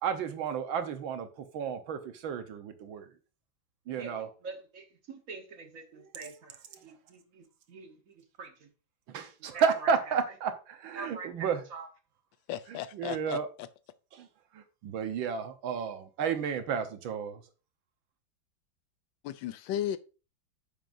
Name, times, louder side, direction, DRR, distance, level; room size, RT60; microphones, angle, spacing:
voice 1, 0.0-3.1 3.9-4.3 9.1-11.6 12.7-13.5 14.1-14.3 14.5-17.4, right 6 dB, 75° right, 1.8 m, -32 dB
voice 2, 3.9-8.7 9.4-9.9 10.9-11.9, right 4 dB, 45° right, 1.4 m, -45 dB
voice 3, 12.5-13.4 19.2-20.0, left 11 dB, 75° left, 1.2 m, -34 dB
9.2 x 6.8 x 2.6 m
omnidirectional pair, 2.2 m